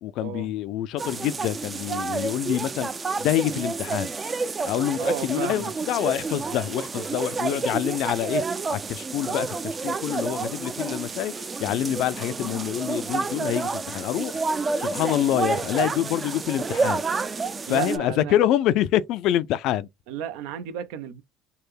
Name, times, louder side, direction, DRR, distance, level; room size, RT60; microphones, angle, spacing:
voice 1, 0.0-2.9 3.2-4.1 4.6-8.4 8.7-14.4 14.8-17.0 17.7-19.9, left 12 dB, 65° left, 0.3 m, -26 dB
sound 1, 1.0-18.0, right 4 dB, 25° right, 0.4 m, -29 dB
voice 2, 5.0-5.7 17.7-18.3 20.1-21.2, right 10 dB, 80° right, 0.5 m, -33 dB
3.3 x 2.2 x 3.3 m
supercardioid pair, 105°, 0 cm